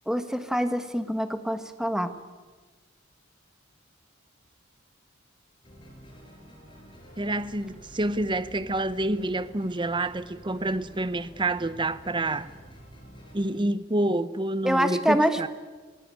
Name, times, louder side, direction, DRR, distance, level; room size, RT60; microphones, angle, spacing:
voice 1, 0.1-2.2 14.6-15.5, equal, 5° right, 1.3 m, -26 dB
sound 1, 5.6-13.5, equal, 25° left, 6.0 m, -49 dB
voice 2, 7.2-12.5 13.3-15.5, right 1 dB, 25° right, 0.8 m, -28 dB
27.0 x 17.0 x 9.1 m
head